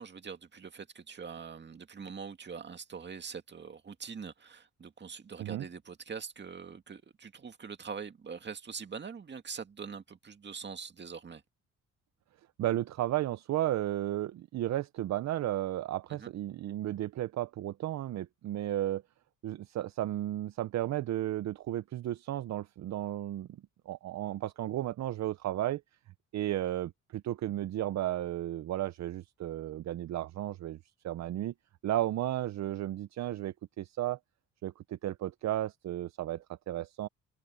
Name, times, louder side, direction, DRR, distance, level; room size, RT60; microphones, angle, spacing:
voice 1, 0.0-11.4 16.1-16.3, right 6 dB, 35° right, 2.1 m, -43 dB
voice 2, 12.6-19.0 19.4-23.5 23.9-25.8 26.3-30.8 31.0-31.5 31.8-34.2 34.6-37.1, right 13 dB, 65° right, 0.7 m, -34 dB
cardioid pair, 90°, 30 cm